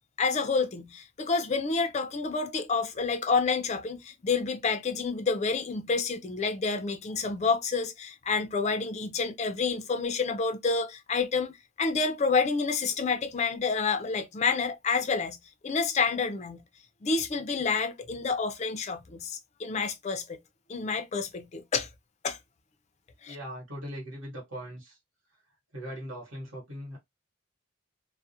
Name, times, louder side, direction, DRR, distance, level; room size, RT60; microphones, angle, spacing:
voice 1, 0.2-15.4 15.6-16.6 17.0-20.4 20.7-21.9 22.2-22.4 23.2-23.4, left 4 dB, 35° left, 0.4 m, -29 dB
voice 2, 23.3-25.0 25.7-27.0, equal, 70° right, 1.2 m, -40 dB
2.3 x 2.0 x 2.6 m
head